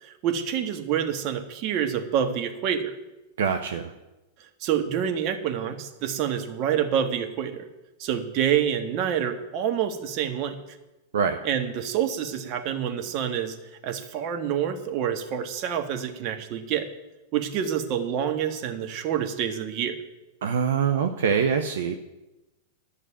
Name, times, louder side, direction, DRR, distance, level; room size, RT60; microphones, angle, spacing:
voice 1, 0.0-2.9 4.6-7.7 8.0-10.6 11.4-13.6 13.8-16.9 17.3-20.0, right 9 dB, 50° right, 7 dB, 1.5 m, -27 dB
voice 2, 3.4-3.9 11.1-11.4 20.4-21.9, right 7 dB, 70° right, 8 dB, 0.8 m, -24 dB
11.5 x 6.5 x 8.9 m, 1.0 s
hypercardioid pair, 100°, 0 cm